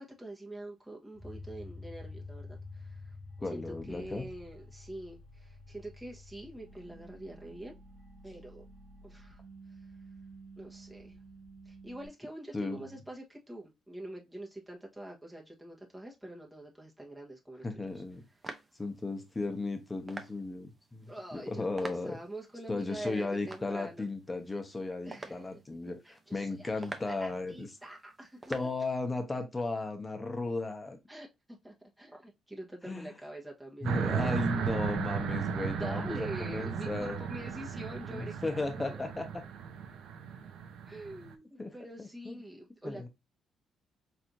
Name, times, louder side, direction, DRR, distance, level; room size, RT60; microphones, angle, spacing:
voice 1, 0.0-3.1 3.4-7.8 8.2-8.6 9.0-9.4 10.6-11.2 11.6-17.9 21.1-24.1 25.1-25.6 26.0-28.4 31.1-34.7 35.8-39.0 40.9-43.1, right 1 dB, 5° right, 1.3 m, -45 dB
sound 1, 1.1-12.1, left 1 dB, 90° left, 2.0 m, -49 dB
voice 2, 3.4-4.3 12.5-12.8 17.6-18.2 18.8-22.2 22.7-27.7 28.5-31.0 32.9-33.1 33.8-37.2 38.1-39.2 41.6-41.7 42.0-42.4 42.8-43.1, left 3 dB, 20° left, 1.2 m, -35 dB
sound 2, 17.9-28.7, right 2 dB, 25° right, 0.7 m, -50 dB
sound 3, 33.8-41.3, right 7 dB, 75° right, 0.8 m, -35 dB
4.6 x 3.3 x 2.7 m
cardioid pair, 90°, 0 cm